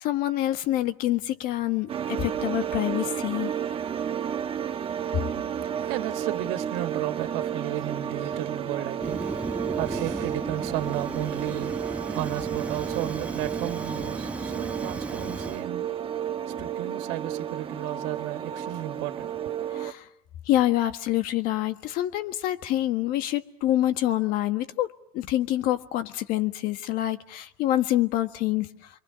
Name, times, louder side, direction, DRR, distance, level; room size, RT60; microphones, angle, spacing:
voice 1, 0.0-3.5 19.7-20.0 20.5-28.7, left 14 dB, 70° left, 1.6 m, -26 dB
sound 1, 1.9-19.9, right 9 dB, 35° right, 1.2 m, -32 dB
voice 2, 5.6-15.9 16.5-19.5, right 14 dB, 75° right, 1.8 m, -34 dB
Fire, 9.0-15.6, right 2 dB, 10° right, 1.0 m, -35 dB
28.5 x 23.5 x 6.9 m
supercardioid pair, 105°, 16 cm